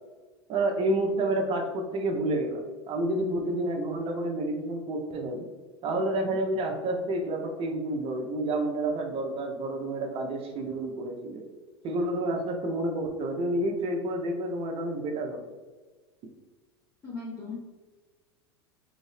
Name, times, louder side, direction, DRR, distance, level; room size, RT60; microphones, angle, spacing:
voice 1, 0.5-5.5 5.8-11.4 11.8-15.4, right 1 dB, 40° right, 3 dB, 0.7 m, -29 dB
voice 2, 17.0-17.5, left 3 dB, 25° left, -6 dB, 0.8 m, -37 dB
2.8 x 2.6 x 3.2 m, 1.3 s
hypercardioid pair, 90°, 14 cm